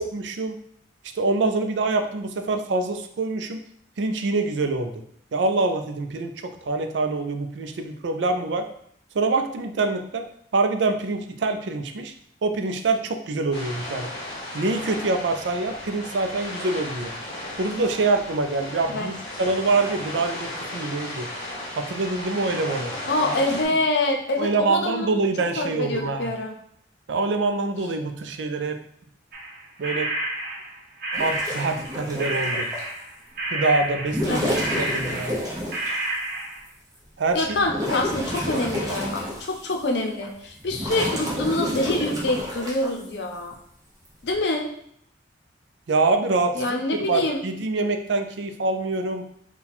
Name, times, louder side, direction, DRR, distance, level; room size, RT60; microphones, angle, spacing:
voice 1, 0.1-0.6 1.2-3.6 4.0-5.0 5.3-8.7 9.1-10.3 10.5-12.1 12.4-14.1 14.5-17.1 17.6-19.1 19.4-21.3 21.8-22.9 23.2-23.3 24.4-26.3 27.1-28.8 29.8-30.1 31.2-32.7 33.5-35.3 37.2-37.6 45.9-49.3, right 3 dB, 75° right, 7 dB, 0.4 m, -25 dB
sound 1, 13.5-23.6, left 1 dB, 25° left, 1.2 m, -35 dB
voice 2, 23.1-25.1 25.6-26.6 34.3-34.8 37.3-43.5 44.2-44.7 46.5-47.4, left 2 dB, 65° left, 3 dB, 0.6 m, -26 dB
sound 2, 29.3-31.9 32.2-35.5 35.7-36.6, right 1 dB, 50° right, 0.8 m, -30 dB
sound 3, 31.1-32.9 34.0-36.1 36.7-36.8 37.3-39.8 40.2-42.9 44.1-44.4, equal, 20° right, 0.9 m, -30 dB
4.2 x 2.3 x 4.1 m, 0.68 s
head